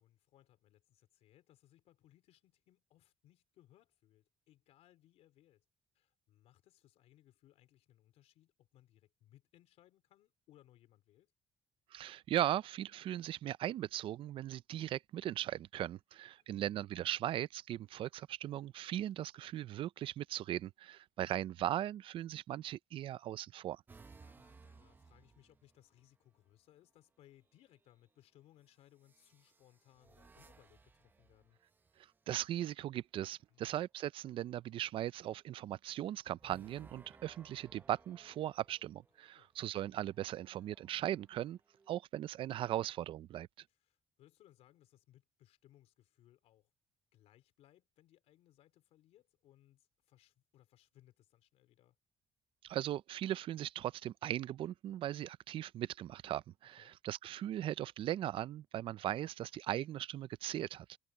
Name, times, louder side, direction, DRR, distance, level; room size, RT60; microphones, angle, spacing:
voice 1, 0.0-5.6 6.0-11.3 16.4-16.7 24.2-31.6 33.5-33.8 39.4-39.5 43.7-46.7 47.1-52.0 56.8-57.0, left 13 dB, 85° left, 3.6 m, -67 dB
voice 2, 11.9-23.8 32.3-41.6 41.9-43.5 52.6-61.0, right 12 dB, 55° right, 0.4 m, -38 dB
sound 1, 23.9-26.1 27.4-27.9 29.0-32.4 36.4-39.3 40.0-41.9, right 4 dB, 20° right, 1.0 m, -62 dB
cardioid pair, 155°, 11 cm